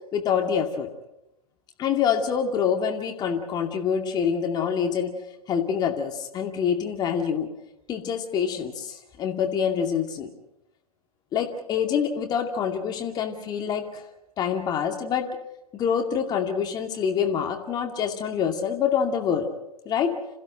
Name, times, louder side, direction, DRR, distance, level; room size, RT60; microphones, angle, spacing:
voice 1, 0.1-0.9 1.8-5.1 5.5-7.5 7.9-10.3 11.3-14.0 14.4-15.3 15.7-19.5 19.9-20.2, left 7 dB, 20° left, 4 dB, 2.4 m, -26 dB
27.5 x 15.5 x 7.8 m, 0.89 s
figure-of-eight pair, 120°, 19 cm